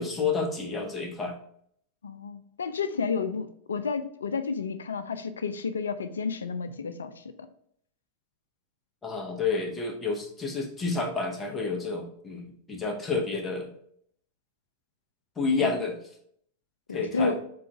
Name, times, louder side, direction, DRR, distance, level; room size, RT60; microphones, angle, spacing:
voice 1, 0.0-1.4 9.0-13.7 15.4-16.0 16.9-17.3, left 4 dB, 15° left, 1 dB, 1.0 m, -29 dB
voice 2, 2.0-7.2 15.6-15.8 16.9-17.4, left 5 dB, 70° left, 10 dB, 0.4 m, -31 dB
3.9 x 3.8 x 3.4 m, 0.66 s
figure-of-eight pair, 90°, 0 cm